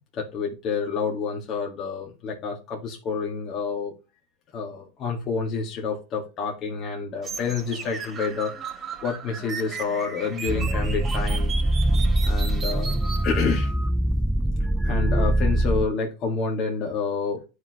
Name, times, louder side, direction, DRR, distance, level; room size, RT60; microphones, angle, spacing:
voice 1, 0.1-4.0 4.5-8.5 9.0-11.7 12.2-13.7 14.8-17.5, left 5 dB, 45° left, 0 dB, 1.8 m, -28 dB
sound 1, 7.2-13.2, right 6 dB, 30° right, 2.7 m, -36 dB
sound 2, 10.5-15.9, right 1 dB, 5° right, 0.5 m, -23 dB
10.5 x 5.0 x 3.0 m, 0.29 s
hypercardioid pair, 95°, 0 cm